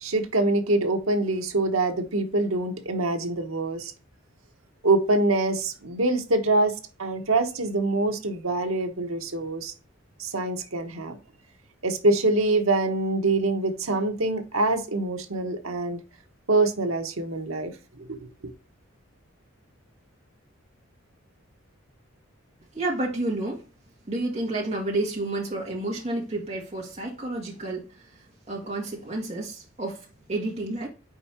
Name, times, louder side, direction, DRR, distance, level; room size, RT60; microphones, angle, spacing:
voice 1, 0.0-3.9 4.8-6.7 7.0-9.7 10.2-11.2 11.8-16.0 16.5-17.7 18.0-18.5, right 2 dB, 85° right, 1.2 m, -25 dB
voice 2, 22.7-23.6 24.1-28.1 28.5-30.9, right 2 dB, 30° right, 2.0 m, -30 dB
5.3 x 4.5 x 4.3 m
head